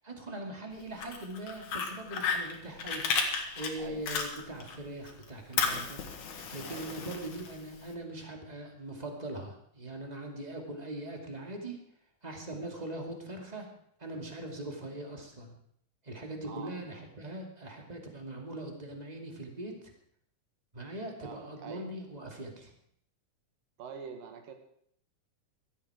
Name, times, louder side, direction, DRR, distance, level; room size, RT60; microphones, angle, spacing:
voice 1, 0.0-3.0 3.5-6.0 6.5-11.8 12.2-13.7 14.0-15.6 16.0-19.9 20.7-22.7, right 1 dB, 15° right, 2 dB, 2.0 m, -41 dB
Fire, 0.8-4.8 5.1-7.9, left 5 dB, 65° left, 3.0 m, -34 dB
voice 2, 6.7-7.0 16.5-16.7 21.2-21.9 23.8-24.5, right 6 dB, 85° right, 6 dB, 3.4 m, -45 dB
16.5 x 12.5 x 5.0 m, 0.66 s
omnidirectional pair, 3.9 m